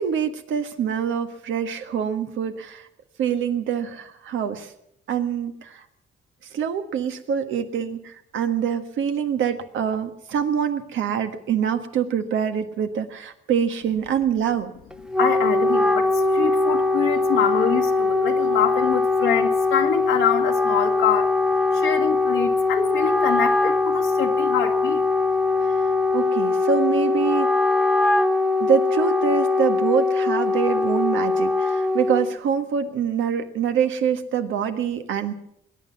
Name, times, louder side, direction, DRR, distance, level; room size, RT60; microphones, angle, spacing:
voice 1, 0.0-2.9 3.2-4.7 5.1-5.8 6.5-14.7 25.7-25.8 26.1-27.5 28.6-35.3, right 7 dB, 75° right, 7 dB, 1.5 m, -25 dB
Wind instrument woodwind instrument, 14.9-32.4, left 3 dB, 5° right, 0.7 m, -21 dB
voice 2, 15.2-21.3 21.7-25.0, left 9 dB, 80° left, 2 dB, 1.4 m, -25 dB
20.5 x 9.7 x 7.2 m, 0.77 s
cardioid pair, 90°, 20 cm